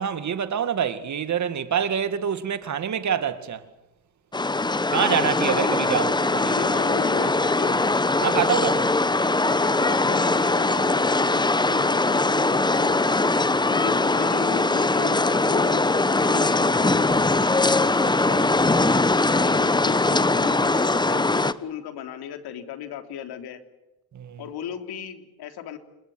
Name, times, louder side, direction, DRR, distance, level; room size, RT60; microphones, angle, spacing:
voice 1, 0.0-3.6 4.9-6.7 8.2-8.9 18.0-18.5 24.1-24.4, right 8 dB, 45° right, 2.3 m, -26 dB
sound 1, 4.3-21.5, left 2 dB, 10° left, 1.1 m, -21 dB
voice 2, 6.5-7.9 9.3-13.3 13.7-17.5 19.2-23.6 24.4-25.8, left 9 dB, 70° left, 3.5 m, -36 dB
28.0 x 20.5 x 7.9 m
cardioid pair, 90°, 40 cm